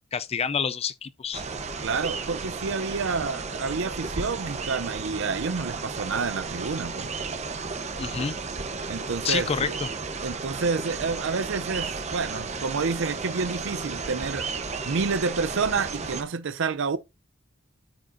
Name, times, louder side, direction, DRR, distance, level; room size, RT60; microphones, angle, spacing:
voice 1, 0.1-1.4 8.0-8.4 9.2-9.9, left 6 dB, 30° left, 0.4 m, -28 dB
sound 1, 1.3-16.2, right 4 dB, 35° right, 0.9 m, -33 dB
voice 2, 1.8-7.1 8.9-9.8 10.2-14.5 14.8-17.0, right 4 dB, 65° right, 0.6 m, -29 dB
13.0 x 5.0 x 2.6 m
head